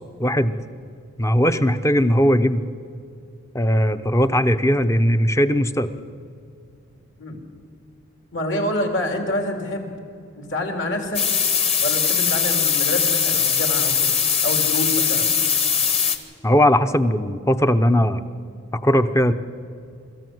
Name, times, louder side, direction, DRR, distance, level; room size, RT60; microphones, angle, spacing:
voice 1, 0.2-0.6 1.2-2.6 3.5-5.9 16.4-18.2 18.7-19.3, equal, 15° left, 10 dB, 0.6 m, -18 dB
voice 2, 8.3-9.9 10.3-11.3 11.8-14.1 14.4-15.3, left 1 dB, 60° left, 4 dB, 3.0 m, -27 dB
sound 1, 11.1-16.2, left 7 dB, 30° left, 1.2 m, -20 dB
25.0 x 14.0 x 7.8 m, 2.4 s
head